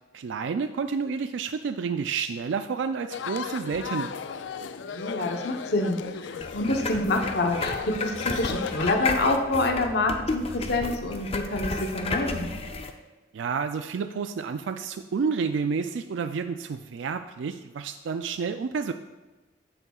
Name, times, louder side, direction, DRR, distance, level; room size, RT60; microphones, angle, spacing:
voice 1, 0.1-4.1 13.3-18.9, right 5 dB, 85° right, 8 dB, 0.4 m, -30 dB
sound 1, 3.1-9.1, left 6 dB, 80° left, 0.4 m, -36 dB
voice 2, 4.9-12.5, left 2 dB, 60° left, 3 dB, 1.0 m, -27 dB
sound 2, 6.4-12.9, left 3 dB, 35° left, 0.6 m, -32 dB
10.5 x 8.3 x 2.4 m, 1.2 s
head